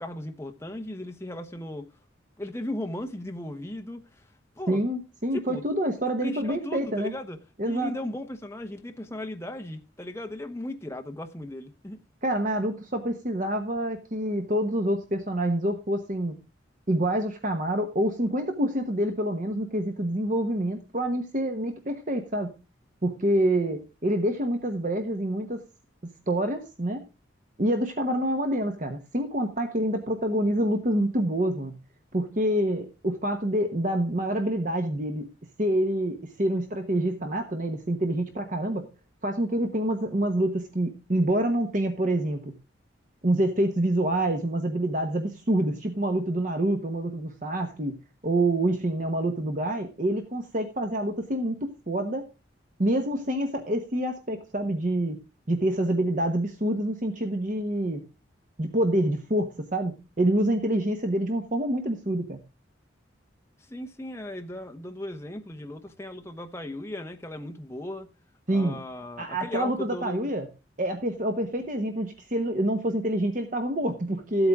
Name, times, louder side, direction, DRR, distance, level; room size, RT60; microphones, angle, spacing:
voice 1, 0.0-1.9 2.4-4.2 4.6-4.8 5.3-5.6 6.2-7.4 7.6-12.0 63.7-68.1 68.5-70.3, left 1 dB, 15° left, 0.9 m, -36 dB
voice 2, 4.7-7.1 7.6-7.9 12.2-16.4 16.9-22.5 23.0-25.6 26.3-27.0 27.6-31.8 32.1-35.3 35.6-38.9 39.2-42.5 43.2-47.9 48.2-52.2 52.8-55.2 55.5-58.0 58.6-62.4 68.5-68.8 69.2-70.5 70.8-74.5, right 1 dB, 40° right, 1.1 m, -27 dB
14.0 x 8.1 x 3.6 m
head